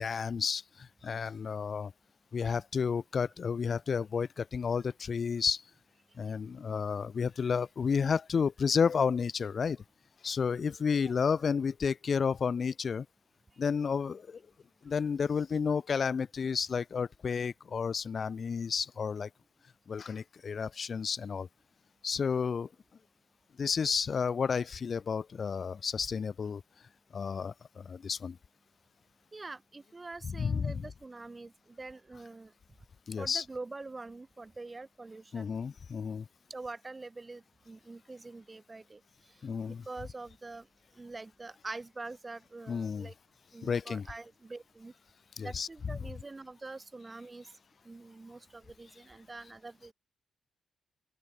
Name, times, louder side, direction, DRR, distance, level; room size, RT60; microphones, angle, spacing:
voice 1, 0.0-1.9 2.3-5.6 6.2-9.8 10.2-13.1 13.6-14.4 14.8-19.3 19.9-21.5 22.0-22.7 23.6-26.6 27.1-28.4 30.2-30.7 33.1-33.4 35.3-36.3 39.4-39.8 42.7-43.1 43.6-44.1 45.4-45.7, left 6 dB, 50° left, 0.7 m, -31 dB
voice 2, 29.3-32.5 33.2-35.5 36.5-39.0 39.7-40.7 41.0-43.1 43.5-44.9 45.4-47.5 47.8-49.9, right 3 dB, 25° right, 2.6 m, -45 dB
open air
cardioid pair, 90°, 0 cm